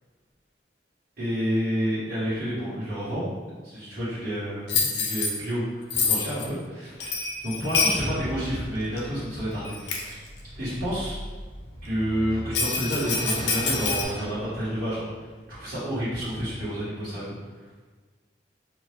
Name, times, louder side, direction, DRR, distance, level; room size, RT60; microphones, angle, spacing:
voice 1, 1.2-3.3 3.6-7.2 7.4-10.2 10.6-11.2 11.8-17.3, equal, 50° right, -15 dB, 1.2 m, -29 dB
Bell, 4.7-5.3 5.9-6.5 7.0-8.0 9.0-9.1 9.6-10.1 12.5-14.0, left 4 dB, 70° left, 0.4 m, -26 dB
sound 1, 8.2-15.1, equal, 20° left, 1.3 m, -39 dB
2.7 x 2.5 x 3.3 m, 1.3 s
head